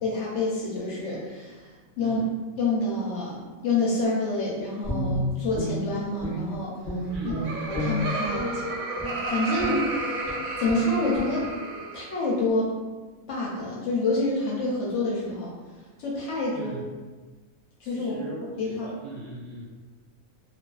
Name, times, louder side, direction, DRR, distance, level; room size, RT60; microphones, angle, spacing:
voice 1, 0.0-2.2 2.6-6.8 7.2-8.6 9.2-10.2 10.6-11.5 11.9-12.7 13.3-15.5 16.0-16.7 17.8-18.3 18.6-18.9, left 2 dB, 65° left, -5 dB, 0.8 m, -28 dB
voice 2, 2.0-2.3 7.1-7.6 16.5-16.8 17.8-19.6, right 2 dB, 65° right, -4 dB, 0.9 m, -40 dB
Guitar, 4.8-6.6 6.8-8.6 9.0-9.2 9.6-9.9 10.2-10.4 10.6-10.9 11.1-11.3, equal, ahead, 0.5 m, -30 dB
Laughter, 7.0-12.2, right 2 dB, 85° right, 1.0 m, -32 dB
2.4 x 2.3 x 2.3 m, 1.3 s
omnidirectional pair, 1.5 m